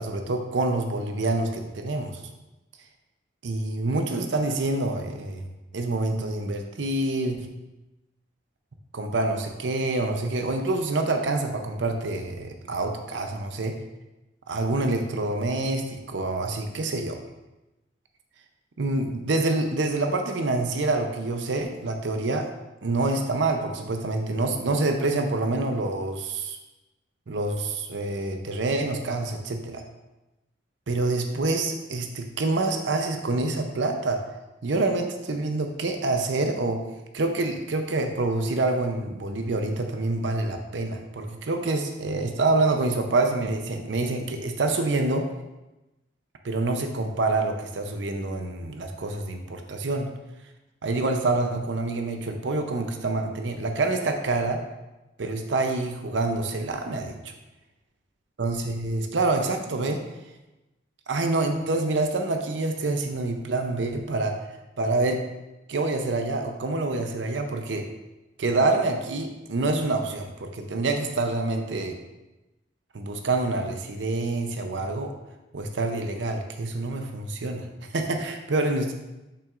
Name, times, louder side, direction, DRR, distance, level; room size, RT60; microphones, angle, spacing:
voice 1, 0.0-2.2 3.4-5.5 5.7-7.5 8.9-13.7 14.5-17.2 18.8-22.5 22.8-26.6 27.3-29.8 30.9-34.2 34.6-36.8 37.1-45.3 46.4-50.1 50.8-54.6 55.2-57.3 58.4-60.0 61.1-64.4 64.8-65.2 65.7-67.9 68.4-72.0 72.9-75.1 75.5-77.7 77.9-78.9, right 2 dB, 75° right, 5 dB, 0.6 m, -26 dB
6.9 x 5.7 x 2.5 m, 1.0 s
head